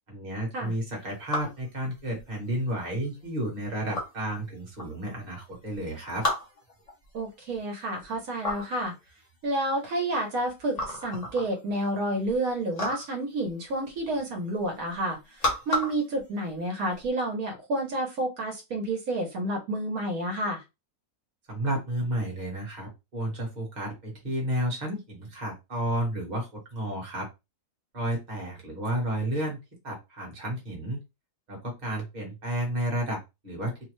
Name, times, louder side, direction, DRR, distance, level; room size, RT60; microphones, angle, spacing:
voice 1, 0.1-6.2 21.5-27.3 27.9-29.6 29.8-31.0 31.5-33.7, right 1 dB, 30° right, -1 dB, 1.1 m, -32 dB
sound 1, 0.7-17.1, left 1 dB, 35° left, 0.8 m, -36 dB
voice 2, 7.1-8.9 9.4-20.6, right 1 dB, 75° right, 2 dB, 1.2 m, -30 dB
3.0 x 2.0 x 3.0 m, 0.24 s
omnidirectional pair, 1.6 m